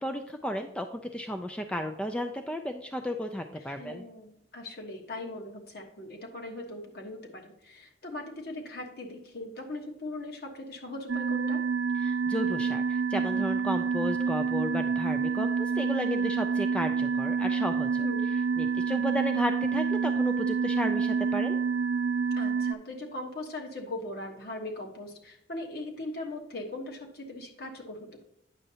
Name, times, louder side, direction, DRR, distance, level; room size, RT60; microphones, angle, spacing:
voice 1, 0.0-4.0 12.0-18.0 18.6-21.6, equal, 5° left, 6 dB, 0.3 m, -33 dB
voice 2, 3.5-11.6 18.0-18.4 22.3-28.2, left 2 dB, 55° left, 1 dB, 1.2 m, -40 dB
sound 1, 11.1-22.7, right 5 dB, 70° right, 0.3 m, -28 dB
8.9 x 6.4 x 2.8 m, 0.81 s
head